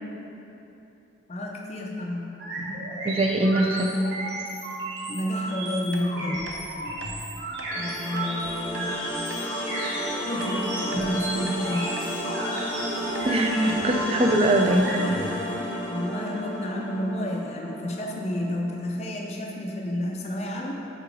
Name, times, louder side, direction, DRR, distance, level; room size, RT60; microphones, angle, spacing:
voice 1, 1.3-2.4 5.1-6.5 7.7-9.0 10.3-11.9 15.8-20.7, left 1 dB, 35° left, -1 dB, 0.4 m, -30 dB
sound 1, 2.4-15.2, right 1 dB, 65° right, 1.3 m, -33 dB
voice 2, 3.0-4.1 13.3-14.9, right 1 dB, 30° right, 2 dB, 0.4 m, -22 dB
sound 2, 5.9-6.1 6.5-6.6 7.0-7.1 7.6-7.7 8.2-8.3 8.7-8.9 9.3-9.5 9.8-10.0 10.4-11.1 11.5-11.6 12.0-12.1 12.6-12.8 13.1-13.3 13.7-13.9 14.3-14.5 14.7-14.8 15.1-15.3, right 3 dB, 90° right, 0.7 m, -42 dB
sound 3, 7.7-18.8, equal, 10° left, 0.8 m, -32 dB
5.8 x 3.8 x 5.3 m, 2.9 s
head